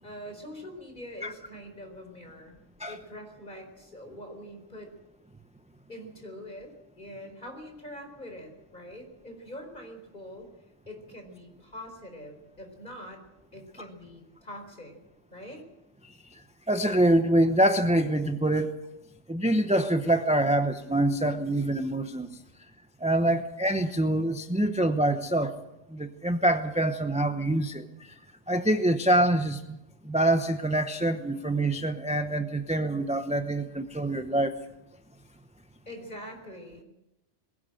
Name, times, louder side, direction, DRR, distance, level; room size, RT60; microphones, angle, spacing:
voice 1, 0.0-2.6 2.9-4.9 5.9-10.5 10.9-13.2 13.5-15.0 15.3-15.6 35.9-36.8, equal, 40° left, 4 dB, 4.5 m, -44 dB
voice 2, 16.7-18.7 19.3-22.4 23.0-25.6 25.9-28.1 28.5-29.8 30.0-34.5, right 1 dB, 5° right, 8 dB, 0.7 m, -25 dB
21.0 x 16.0 x 7.7 m, 0.95 s
omnidirectional pair, 1.3 m